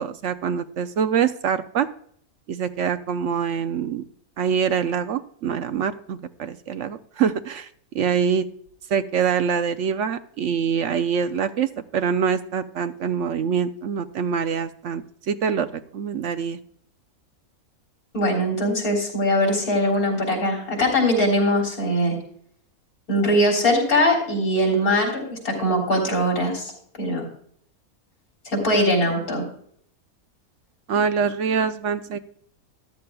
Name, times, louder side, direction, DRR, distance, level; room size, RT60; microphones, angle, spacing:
voice 1, 0.0-1.9 2.5-4.0 4.4-7.7 7.9-8.5 8.9-16.6 30.9-32.2, right 7 dB, 65° right, 10 dB, 0.9 m, -24 dB
voice 2, 18.1-22.1 23.1-26.7 27.0-27.3 28.4-29.4, equal, 80° left, -1 dB, 4.2 m, -21 dB
13.5 x 12.0 x 2.3 m, 0.62 s
omnidirectional pair, 1.5 m